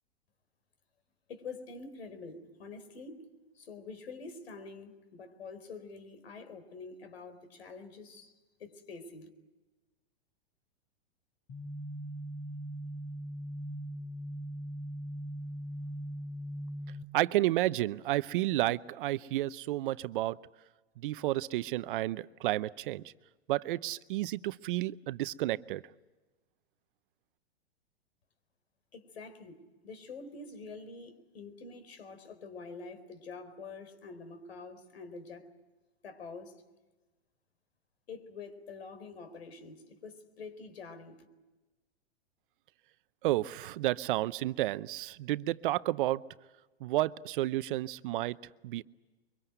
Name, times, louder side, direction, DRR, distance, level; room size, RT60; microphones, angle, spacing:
voice 1, 1.3-3.3 3.5-8.3 8.6-9.3 28.9-35.5 36.0-36.5 38.1-41.2, left 4 dB, 75° left, 9 dB, 4.5 m, -46 dB
sound 1, 11.5-17.0, equal, 35° left, 3.7 m, -40 dB
voice 2, 17.1-20.4 21.0-23.0 23.5-25.8 43.2-46.2 46.8-48.4 48.6-48.8, right 16 dB, 55° right, 16 dB, 0.8 m, -31 dB
24.0 x 24.0 x 8.0 m, 1.2 s
hypercardioid pair, 120°, 32 cm